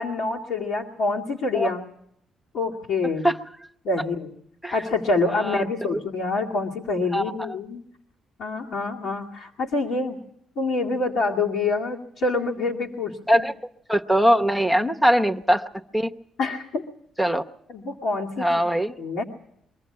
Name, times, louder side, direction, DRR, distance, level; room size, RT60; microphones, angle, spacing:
voice 1, 0.0-1.8 2.5-3.3 3.8-4.3 4.7-7.8 8.4-10.2 10.6-13.5 14.7-14.9 16.4-16.8 17.7-18.5 19.0-19.2, left 3 dB, 75° left, -3 dB, 2.2 m, -26 dB
voice 2, 5.3-6.0 7.1-7.5 13.3-13.5 13.9-15.6 15.9-16.1 17.2-17.4 18.4-18.9, equal, ahead, 5 dB, 0.9 m, -21 dB
24.0 x 14.5 x 8.7 m, 0.73 s
cardioid pair, 90°, 0 cm